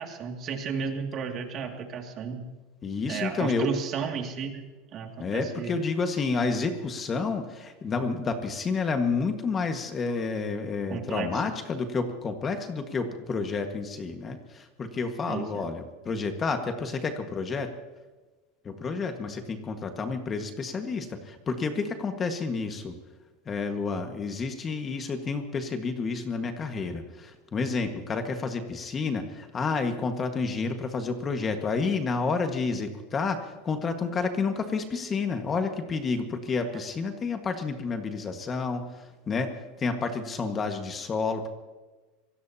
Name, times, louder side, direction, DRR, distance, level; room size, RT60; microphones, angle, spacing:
voice 1, 0.0-2.4 3.1-4.6 4.9-5.8 10.9-11.4 15.3-15.6 36.7-36.8, right 6 dB, 40° right, 3 dB, 2.4 m, -33 dB
voice 2, 2.8-3.7 5.2-17.7 18.6-22.9 23.4-41.5, left 4 dB, 25° left, 6 dB, 1.7 m, -30 dB
26.5 x 18.0 x 2.9 m, 1.2 s
supercardioid pair, 125°, 0 cm